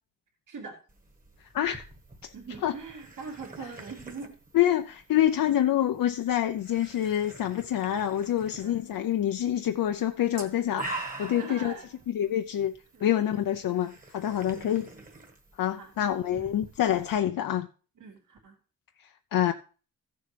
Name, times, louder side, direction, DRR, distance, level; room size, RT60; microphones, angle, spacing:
voice 1, 0.5-0.8 2.3-4.4 8.5-8.8 9.9-10.1 11.3-12.4 12.9-13.1 14.5-15.0 15.7-15.9 16.3-16.5 18.0-18.6, right 4 dB, 70° right, 2.4 m, -43 dB
sound 1, 0.9-17.2, right 3 dB, 25° right, 1.3 m, -46 dB
voice 2, 1.5-1.8 2.2-2.3 2.6-2.7 4.5-10.9 11.2-11.7 12.1-12.7 13.0-14.9 15.6-17.7 19.3-19.5, left 11 dB, 85° left, 0.6 m, -26 dB
15.0 x 7.1 x 3.3 m
wide cardioid pair, 165°, 33 cm